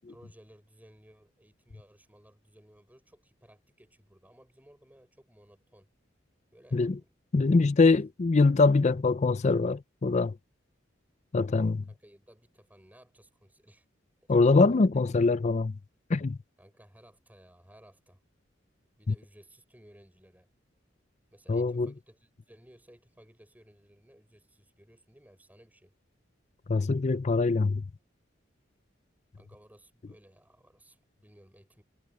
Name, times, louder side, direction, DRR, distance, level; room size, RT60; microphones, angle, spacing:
voice 1, 0.1-5.9 6.5-7.8 11.9-13.8 14.9-15.0 16.6-18.2 19.0-20.5 21.3-25.9 29.4-31.8, equal, 10° right, 6.5 m, -58 dB
voice 2, 7.3-10.4 11.3-11.8 14.3-15.7 16.1-16.4 21.5-21.9 26.7-27.8, left 3 dB, 35° left, 0.5 m, -23 dB
head